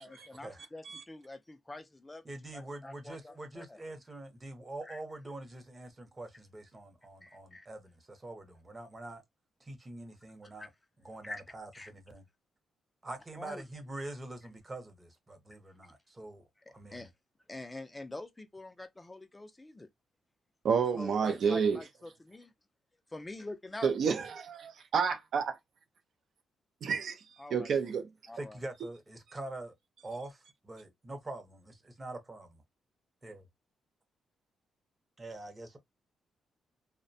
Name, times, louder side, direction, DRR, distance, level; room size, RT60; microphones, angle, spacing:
voice 1, 0.0-2.2 2.5-3.8 4.8-5.0 7.2-7.7 10.6-10.7 11.2-11.4 11.7-11.9 13.4-13.6 16.7-17.1 17.5-19.9 20.9-22.5 23.1-23.9 27.4-27.9 28.3-28.6, left 2 dB, 15° left, 0.3 m, -46 dB
voice 2, 2.2-9.2 9.6-10.7 11.0-12.2 13.0-17.1 28.3-29.7 30.0-32.6 33.2-33.5 35.2-35.8, right 2 dB, 20° right, 0.6 m, -45 dB
voice 3, 20.6-21.8 23.8-25.6 26.8-28.1, right 6 dB, 65° right, 0.4 m, -30 dB
2.5 x 2.1 x 2.5 m
cardioid pair, 125°, 0 cm